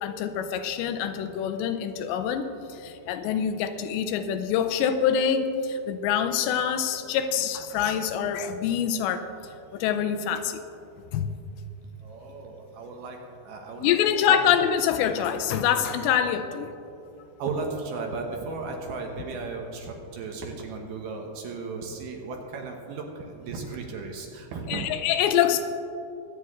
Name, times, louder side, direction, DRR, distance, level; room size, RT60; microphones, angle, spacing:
voice 1, 0.0-9.3 9.7-10.6 11.1-11.4 13.8-16.7 24.7-25.6, left 8 dB, 80° left, 9 dB, 2.8 m, -25 dB
voice 2, 12.0-14.0 14.3-14.4 17.4-24.9, right 4 dB, 70° right, 2 dB, 2.7 m, -35 dB
22.5 x 8.9 x 3.6 m, 2.7 s
omnidirectional pair, 5.1 m